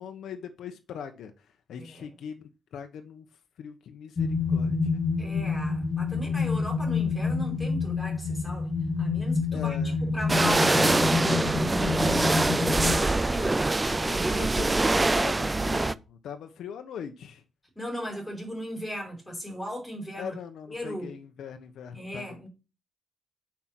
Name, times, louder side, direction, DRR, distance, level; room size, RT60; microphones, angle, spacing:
voice 1, 0.0-3.2 3.6-5.0 9.5-10.1 12.7-13.2 13.9-17.4 20.2-22.5, left 7 dB, 85° left, 1.0 m, -41 dB
sound 1, 4.2-12.9, left 4 dB, 35° left, 1.3 m, -28 dB
voice 2, 5.2-8.7 9.0-14.4 17.7-20.3 20.7-21.1 21.9-22.5, equal, 5° left, 5.1 m, -37 dB
sound 2, 10.3-15.9, right 2 dB, 15° right, 0.4 m, -24 dB
8.7 x 5.9 x 6.0 m
wide cardioid pair, 150°, 0 cm